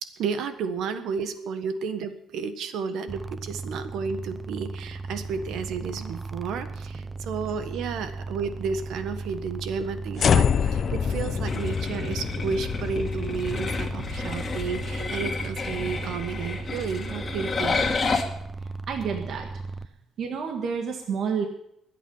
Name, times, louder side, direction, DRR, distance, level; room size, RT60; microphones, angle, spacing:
voice 1, 0.0-17.8, right 5 dB, 80° right, 10 dB, 1.4 m, -32 dB
sound 1, 3.1-19.9, right 3 dB, 20° right, 0.7 m, -36 dB
sound 2, 10.2-16.5, left 7 dB, 45° left, 0.5 m, -28 dB
sound 3, 11.5-18.2, left 4 dB, 30° left, 2.2 m, -31 dB
voice 2, 18.9-19.5 20.2-21.5, right 6 dB, 65° right, 3 dB, 1.7 m, -29 dB
22.0 x 8.5 x 5.6 m, 0.76 s
cardioid pair, 130°, 0 cm